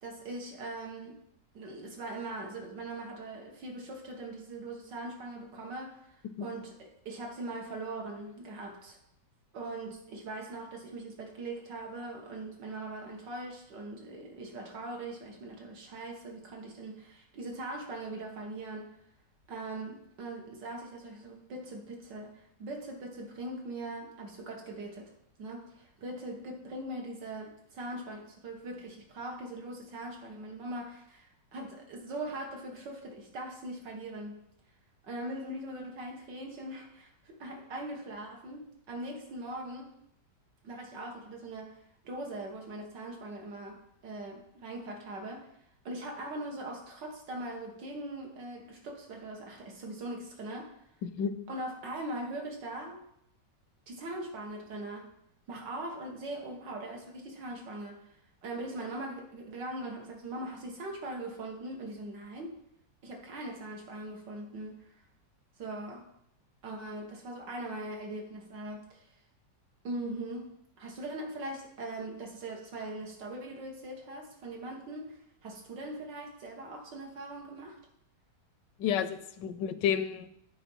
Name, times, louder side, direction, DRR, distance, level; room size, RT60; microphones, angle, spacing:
voice 1, 0.0-1.2 1.5-9.0 9.5-18.9 19.5-25.1 25.4-34.4 35.0-39.9 40.6-41.8 42.0-45.5 45.9-50.7 51.5-53.0 53.9-55.1 55.5-58.1 58.4-62.6 63.0-65.0 65.6-66.0 66.6-69.1 69.8-77.8, right 2 dB, 85° right, 1 dB, 2.0 m, -41 dB
voice 2, 51.0-51.3 78.8-80.3, left 8 dB, 90° left, 12 dB, 1.3 m, -31 dB
8.5 x 4.4 x 5.4 m, 0.75 s
omnidirectional pair, 1.9 m